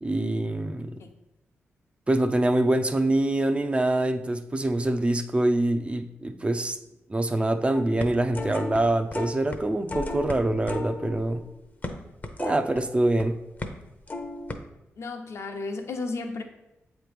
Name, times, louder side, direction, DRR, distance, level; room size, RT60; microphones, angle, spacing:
voice 1, 0.0-0.9 2.1-6.8 7.1-11.4 12.4-13.4, right 1 dB, 25° right, 8 dB, 0.5 m, -25 dB
sound 1, 7.7-8.8 9.1-9.6 9.9-13.2 13.6-13.8 14.1-14.6, left 2 dB, 35° left, 0.7 m, -35 dB
voice 2, 15.0-16.4, left 3 dB, 65° left, 5 dB, 0.9 m, -33 dB
7.8 x 3.1 x 5.1 m, 0.92 s
cardioid pair, 70°, 5 cm